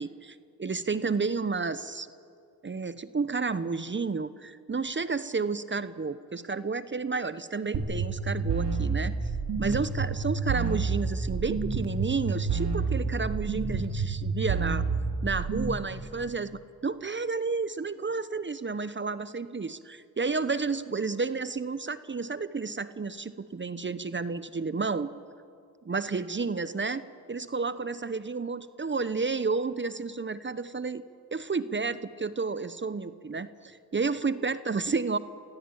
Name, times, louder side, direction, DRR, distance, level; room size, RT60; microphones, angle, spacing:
voice 1, 0.0-2.1 2.6-9.1 9.6-14.8 15.2-16.5 16.8-25.1 25.9-27.0 27.3-31.0 31.3-35.2, right 4 dB, 25° right, 14 dB, 0.9 m, -31 dB
sound 1, 7.7-15.8, right 4 dB, 75° right, 3.2 m, -29 dB
26.5 x 16.0 x 8.8 m, 2.4 s
supercardioid pair, 50°, 42 cm